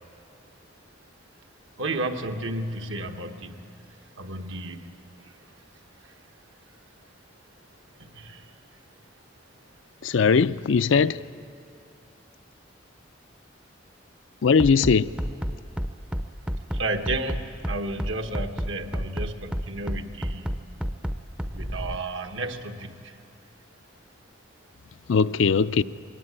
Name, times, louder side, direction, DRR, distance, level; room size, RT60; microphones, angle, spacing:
voice 1, 1.8-3.6 4.2-5.3 6.0-6.1 8.0-8.5 16.7-20.7 21.5-23.2, right 2 dB, 75° right, 1.3 m, -33 dB
voice 2, 10.0-11.2 14.4-15.1 25.1-25.8, left 5 dB, 75° left, 0.5 m, -20 dB
Bass drum, 14.6-22.0, equal, 5° right, 0.5 m, -29 dB
21.5 x 16.5 x 9.7 m
head